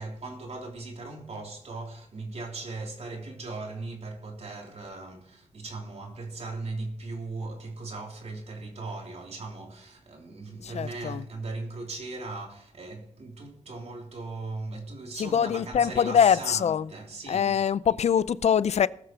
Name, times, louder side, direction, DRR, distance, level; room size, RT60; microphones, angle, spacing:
voice 1, 0.0-17.6, right 3 dB, 60° right, 3.1 m, -38 dB
voice 2, 10.6-11.3 15.1-16.9 17.3-18.9, left 8 dB, 65° left, 0.5 m, -23 dB
19.5 x 6.7 x 4.5 m
cardioid pair, 65°, 12 cm